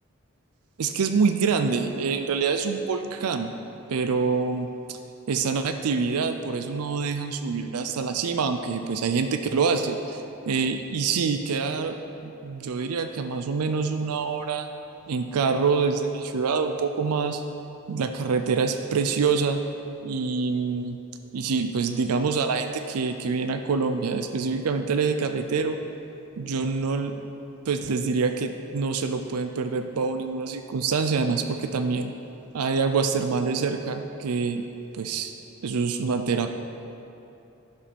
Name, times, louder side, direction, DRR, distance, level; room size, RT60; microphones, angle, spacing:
voice 1, 0.8-3.5 3.9-5.0 5.3-14.7 15.1-17.4 17.9-19.6 20.0-21.0 21.3-25.8 26.4-27.1 27.7-32.1 32.5-34.6 34.9-35.3 35.6-36.5, right 5 dB, 85° right, 7 dB, 0.4 m, -26 dB
11.0 x 5.3 x 5.3 m, 2.8 s
head